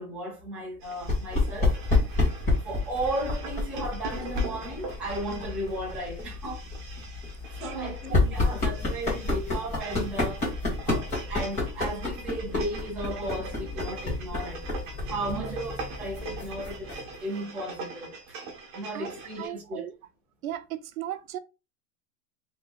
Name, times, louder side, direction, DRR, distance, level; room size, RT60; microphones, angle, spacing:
voice 1, 0.0-1.7 2.6-6.7 7.5-10.6 10.8-14.6 15.1-16.9 17.2-18.4 18.7-19.9, right 1 dB, 5° right, 0.5 m, -35 dB
sound 1, 0.8-19.5, right 3 dB, 35° right, 1.1 m, -43 dB
sound 2, 1.0-17.2, left 3 dB, 15° left, 1.5 m, -30 dB
voice 2, 7.6-8.4 15.3-15.5 18.9-19.1 19.4-19.9 20.4-21.4, right 12 dB, 70° right, 0.7 m, -36 dB
4.3 x 3.0 x 3.5 m
supercardioid pair, 175°, 43 cm